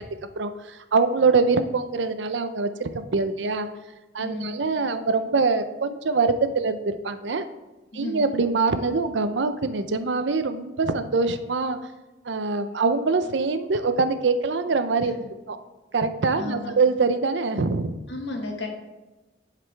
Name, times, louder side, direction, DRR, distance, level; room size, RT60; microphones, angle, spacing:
voice 1, 0.4-3.7 4.1-7.5 7.9-11.8 12.2-15.1 15.5-15.6 15.9-18.0, right 4 dB, 80° right, 10 dB, 0.6 m, -24 dB
voice 2, 4.2-4.6 7.9-8.3 15.0-15.3 16.3-16.7 18.1-18.7, left 2 dB, 75° left, 2 dB, 1.4 m, -33 dB
11.0 x 5.0 x 3.3 m, 1.1 s
head